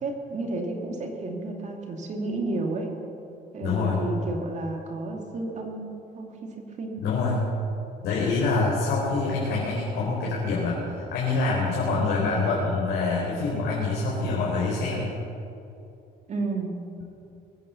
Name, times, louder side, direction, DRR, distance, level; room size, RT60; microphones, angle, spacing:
voice 1, 0.0-2.9 3.5-7.0 16.3-16.8, right 2 dB, 45° right, 2 dB, 2.5 m, -32 dB
voice 2, 3.6-4.0 7.0-7.5 8.0-15.1, left 3 dB, 80° left, -5 dB, 4.0 m, -26 dB
21.5 x 9.1 x 7.0 m, 2.7 s
cardioid pair, 110°, 17 cm